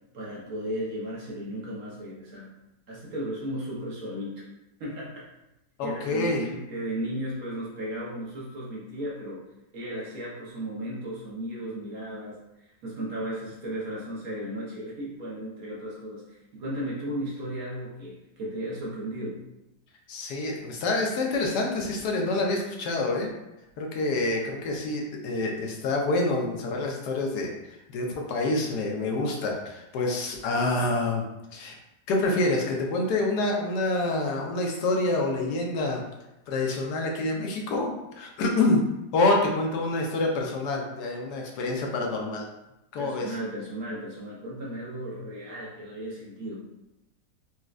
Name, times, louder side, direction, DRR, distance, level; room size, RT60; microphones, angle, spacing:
voice 1, 0.1-2.5 2.9-4.5 4.8-5.2 5.8-19.4 30.9-31.0 43.0-46.7, right 1 dB, 60° right, -5 dB, 1.2 m, -35 dB
voice 2, 5.8-6.4 20.1-23.3 23.8-31.2 31.5-31.8 32.1-36.0 36.5-37.9 38.2-38.8 39.1-42.5 42.9-43.3, left 2 dB, 75° left, 0 dB, 1.1 m, -27 dB
4.1 x 2.3 x 2.4 m, 0.91 s
omnidirectional pair, 1.8 m